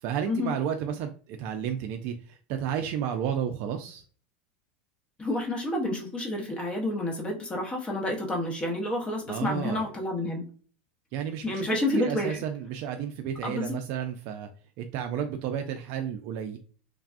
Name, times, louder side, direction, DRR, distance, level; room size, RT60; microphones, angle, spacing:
voice 1, 0.0-4.0 9.3-9.9 11.1-14.5 14.8-16.6, right 8 dB, 55° right, 5 dB, 0.4 m, -32 dB
voice 2, 5.2-10.4 11.4-12.3 13.4-13.7, left 1 dB, 20° left, 0 dB, 0.9 m, -29 dB
3.3 x 2.3 x 2.4 m, 0.43 s
supercardioid pair, 120°, 6 cm